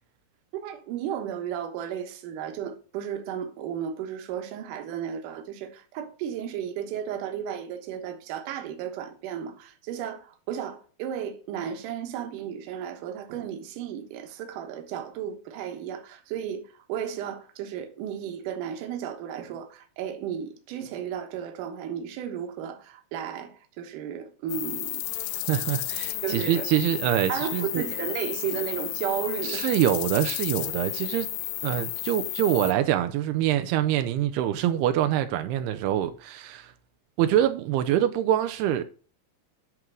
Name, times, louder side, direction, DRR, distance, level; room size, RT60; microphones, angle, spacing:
voice 1, 0.5-25.0 26.2-26.7 27.3-29.7, right 9 dB, 65° right, 2.4 m, -34 dB
sound 1, 24.5-32.7, left 16 dB, 85° left, 2.7 m, -32 dB
voice 2, 25.5-27.9 29.4-31.3 31.6-36.7 37.2-38.8, right 12 dB, 85° right, 2.6 m, -25 dB
11.0 x 3.7 x 6.1 m
omnidirectional pair, 4.6 m